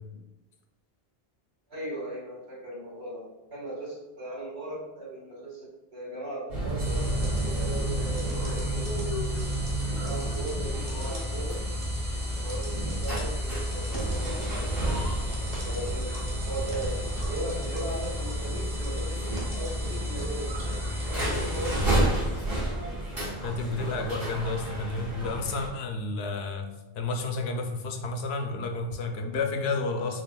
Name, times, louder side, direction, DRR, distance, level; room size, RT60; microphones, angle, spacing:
voice 1, 1.7-9.1 10.0-11.6 12.4-14.9 15.6-17.0 17.3-20.6 21.1-21.8, right 1 dB, 85° right, -7 dB, 1.9 m, -38 dB
sound 1, 6.5-25.7, right 1 dB, 65° right, 1.9 m, -32 dB
sound 2, 6.8-21.9, left 1 dB, 50° right, 1.1 m, -34 dB
voice 2, 23.4-26.7 27.0-30.2, left 3 dB, 85° left, 4 dB, 0.8 m, -31 dB
6.2 x 2.2 x 2.2 m, 1.0 s
omnidirectional pair, 1.0 m